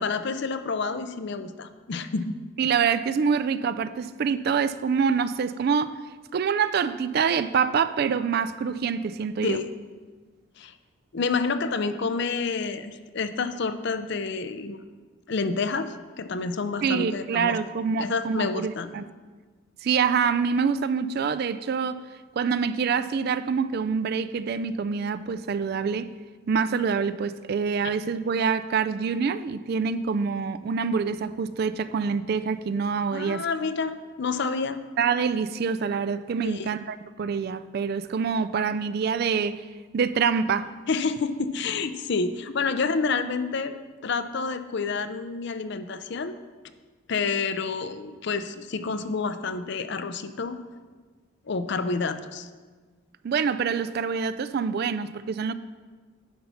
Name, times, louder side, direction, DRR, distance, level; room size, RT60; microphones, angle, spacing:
voice 1, 0.0-2.4 9.4-9.7 10.6-10.7 11.1-14.8 15.3-17.6 18.0-18.9 33.1-34.8 36.4-36.7 40.9-43.8 44.0-46.3 47.1-50.6 51.5-52.5, left 4 dB, 55° left, 0.5 m, -29 dB
voice 2, 2.6-6.0 6.3-9.6 16.8-19.0 19.8-22.0 22.4-26.1 26.5-33.5 35.0-39.6 39.9-40.7 53.2-55.5, right 6 dB, 50° right, 0.3 m, -26 dB
10.5 x 5.8 x 5.6 m
head